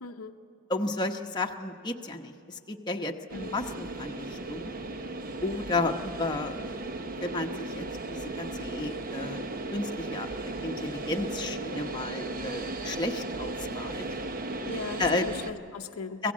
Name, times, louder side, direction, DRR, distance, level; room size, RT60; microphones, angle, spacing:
voice 1, 0.0-0.3 3.3-3.6 14.6-16.3, left 5 dB, 80° left, 5 dB, 0.8 m, -39 dB
voice 2, 0.7-4.7 5.4-6.8 7.2-9.4 9.7-10.3 10.6-14.0 15.0-15.3 16.2-16.3, left 2 dB, 20° left, 2 dB, 1.0 m, -32 dB
sound 1, 3.3-15.5, right 2 dB, 40° right, 0.9 m, -36 dB
25.0 x 16.5 x 7.4 m, 2.8 s
head